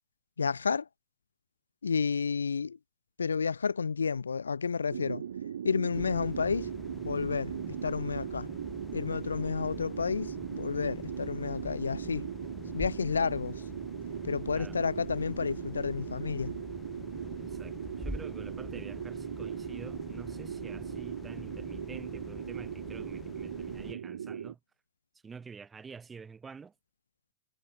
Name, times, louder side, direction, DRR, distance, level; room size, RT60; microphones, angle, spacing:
voice 1, 0.4-0.9 1.8-2.8 3.2-5.2 5.6-6.7 7.0-7.5 7.8-8.5 8.9-12.3 12.7-13.6 14.2-16.6, left 5 dB, 75° left, 0.6 m, -31 dB
sound 1, 4.9-24.6, right 8 dB, 65° right, 0.3 m, -39 dB
sound 2, 5.9-23.9, left 6 dB, 20° left, 1.6 m, -47 dB
voice 2, 17.4-24.6 25.2-26.7, right 5 dB, 15° right, 4.4 m, -48 dB
sound 3, 17.8-19.4, equal, ahead, 2.0 m, -44 dB
figure-of-eight pair, 90°, 0 cm